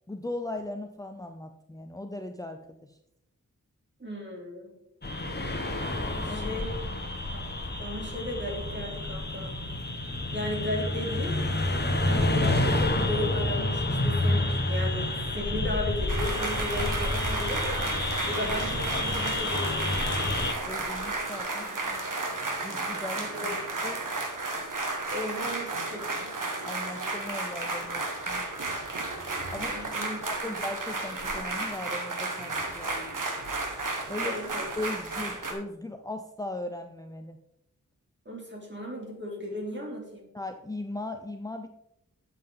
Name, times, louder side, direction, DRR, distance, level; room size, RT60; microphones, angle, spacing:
voice 1, 0.1-3.0 6.0-6.6 20.6-21.7 22.6-23.3 23.8-24.0 26.6-28.4 29.5-33.2 34.1-34.4 34.8-37.4 40.3-41.7, left 2 dB, 10° left, 6 dB, 0.6 m, -38 dB
voice 2, 4.0-4.7 6.2-6.8 7.3-7.5 7.7-9.5 10.3-11.4 12.1-17.9 18.3-20.2 23.3-23.6 25.1-26.1 29.5-30.2 30.5-30.6 34.2-34.7 38.3-40.3, left 1 dB, 35° right, -1 dB, 3.5 m, -35 dB
sound 1, 5.0-20.5, left 2 dB, 30° left, 1.6 m, -29 dB
sound 2, 16.1-35.5, right 2 dB, 75° right, 2.0 m, -33 dB
12.0 x 7.6 x 3.9 m, 0.85 s
wide cardioid pair, 95°, 32 cm